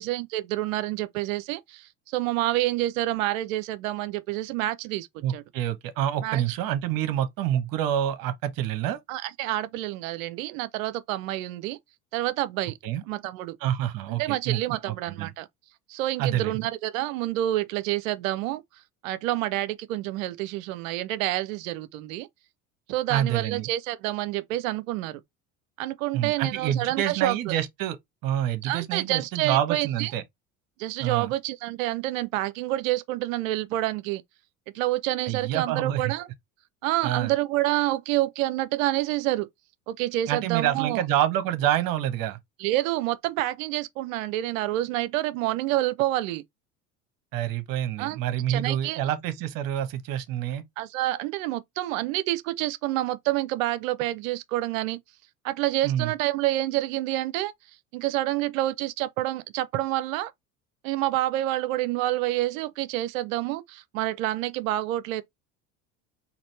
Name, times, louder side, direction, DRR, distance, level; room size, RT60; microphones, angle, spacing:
voice 1, 0.0-5.1 5.3-5.4 6.2-6.6 9.1-11.8 12.1-12.8 13.1-13.6 14.1-15.5 15.9-18.6 19.0-22.3 22.9-25.2 25.8-27.5 28.6-30.1 30.8-34.2 34.7-36.3 36.8-39.5 39.9-41.0 42.6-46.4 48.0-48.2 48.5-49.0 50.8-55.0 55.4-57.5 57.9-60.3 60.8-65.2, right 15 dB, 70° right, 0.7 m, -28 dB
voice 2, 5.2-9.0 12.8-13.0 13.6-15.3 16.2-16.7 23.1-23.7 26.1-28.0 28.2-30.2 31.0-31.3 35.3-36.1 37.0-37.3 40.3-42.4 47.3-50.6 55.8-56.1, right 11 dB, 55° right, 1.1 m, -27 dB
4.1 x 2.9 x 3.2 m
hypercardioid pair, 70°, 42 cm